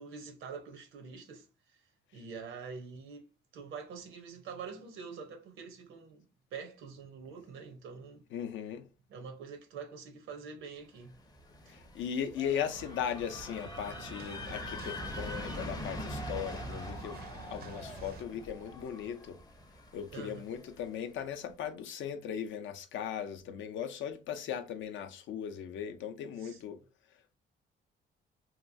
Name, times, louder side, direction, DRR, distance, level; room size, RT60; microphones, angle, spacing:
voice 1, 0.0-1.4 2.1-3.2 3.5-8.2 9.1-11.1 11.7-11.8 20.1-20.4 26.4-26.6, right 5 dB, 90° right, 0.7 m, -45 dB
voice 2, 8.3-8.8 11.7-17.2 17.5-19.4 19.9-26.8, left 8 dB, 75° left, 0.5 m, -38 dB
sound 1, 11.1-20.9, left 1 dB, 20° left, 0.5 m, -44 dB
sound 2, 12.6-18.2, right 6 dB, 50° right, 0.4 m, -49 dB
2.9 x 2.3 x 2.6 m
cardioid pair, 90°, 20 cm